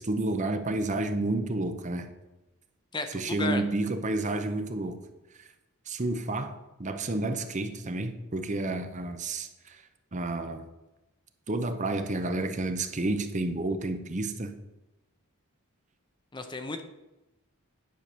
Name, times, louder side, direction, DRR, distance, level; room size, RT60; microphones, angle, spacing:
voice 1, 0.0-2.1 3.1-5.0 5.4-5.5 5.9-9.8 10.1-10.6 11.5-14.5, right 2 dB, 35° right, 8 dB, 0.7 m, -30 dB
voice 2, 2.9-3.6 16.3-16.8, left 3 dB, 20° left, 8 dB, 0.6 m, -33 dB
10.5 x 4.7 x 6.7 m, 1.0 s
head